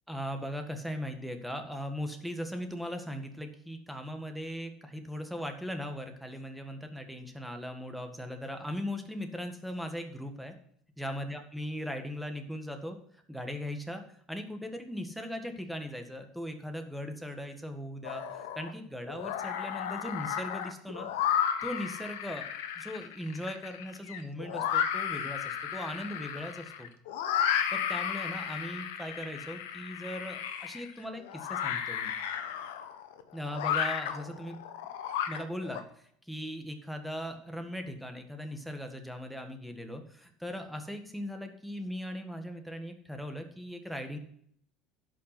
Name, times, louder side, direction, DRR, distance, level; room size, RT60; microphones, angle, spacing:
voice 1, 0.1-10.5 11.0-21.1 21.6-22.5 22.7-26.9 27.7-32.1 33.3-34.5 35.3-44.2, equal, ahead, 5 dB, 1.6 m, -39 dB
sound 1, 18.0-18.7 19.1-35.8, left 9 dB, 85° left, 1.0 m, -33 dB
11.0 x 5.5 x 5.8 m, 0.64 s
supercardioid pair, 105°, 0 cm